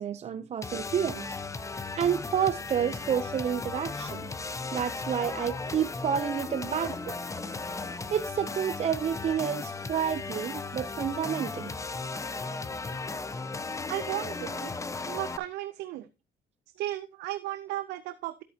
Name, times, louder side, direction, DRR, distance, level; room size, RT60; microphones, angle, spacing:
voice 1, 0.0-1.4 1.9-4.3 4.7-7.0 8.1-11.8, right 8 dB, 40° right, 12 dB, 0.5 m, -29 dB
sound 1, 0.6-15.4, left 3 dB, 20° left, 0.8 m, -36 dB
voice 2, 13.9-14.7 15.1-16.1 16.8-18.4, right 15 dB, 85° right, 13 dB, 0.6 m, -35 dB
13.0 x 8.5 x 2.8 m, 0.26 s
cardioid pair, 110°, 17 cm